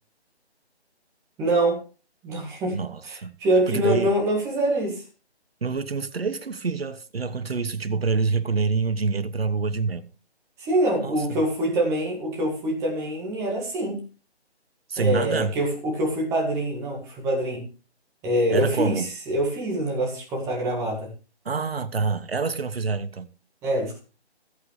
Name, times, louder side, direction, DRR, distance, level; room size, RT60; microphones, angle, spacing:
voice 1, 1.4-1.8 2.2-2.8 3.1-5.0 10.6-14.0 15.0-17.6 18.2-21.1 23.6-24.0, right 1 dB, 10° right, 1.8 m, -25 dB
voice 2, 2.7-3.3 3.7-4.1 5.6-10.1 11.0-11.4 14.9-15.5 18.5-19.1 21.4-23.3, right 4 dB, 60° right, 1.2 m, -26 dB
19.0 x 8.5 x 3.2 m
figure-of-eight pair, 155°, 33 cm